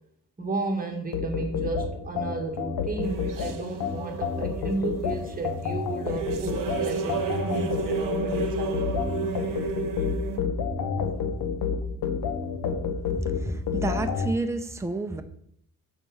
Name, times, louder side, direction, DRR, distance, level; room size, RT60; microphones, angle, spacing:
voice 1, 0.4-8.9, right 3 dB, 25° right, 3 dB, 1.6 m, -33 dB
sound 1, 1.1-14.3, left 6 dB, 75° left, 1.1 m, -29 dB
sound 2, 3.0-10.4, right 4 dB, 65° right, 1.0 m, -32 dB
voice 2, 13.1-15.2, right 2 dB, 10° right, 7 dB, 0.7 m, -30 dB
7.3 x 4.6 x 4.8 m, 0.68 s
cardioid pair, 100°, 35 cm